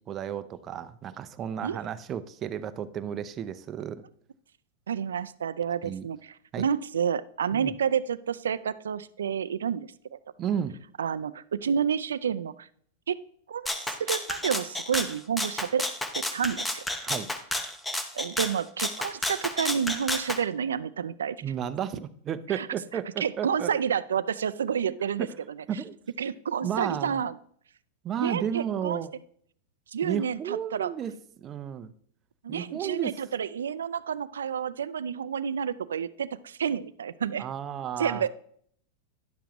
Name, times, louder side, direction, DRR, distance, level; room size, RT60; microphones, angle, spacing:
voice 1, 0.1-4.1 5.8-6.0 6.5-6.6 7.5-7.7 10.4-10.8 17.0-17.3 21.4-23.7 25.2-25.3 25.7-26.0 26.6-27.2 28.0-29.1 30.0-31.1 31.4-31.9 32.5-33.1 37.4-38.3, right 9 dB, 30° right, 12 dB, 0.6 m, -33 dB
voice 2, 4.9-10.2 11.0-12.7 13.1-13.2 13.5-13.7 14.0-15.8 16.1-16.8 18.1-21.4 22.5-22.7 23.2-25.3 25.6-25.7 26.2-27.4 28.2-29.0 29.9-30.9 32.4-37.4 38.0-38.3, right 7 dB, 90° right, 16 dB, 0.4 m, -29 dB
Rattle (instrument), 13.7-20.4, left 1 dB, 5° left, 0.8 m, -31 dB
10.5 x 6.9 x 3.0 m, 0.62 s
hypercardioid pair, 115°, 0 cm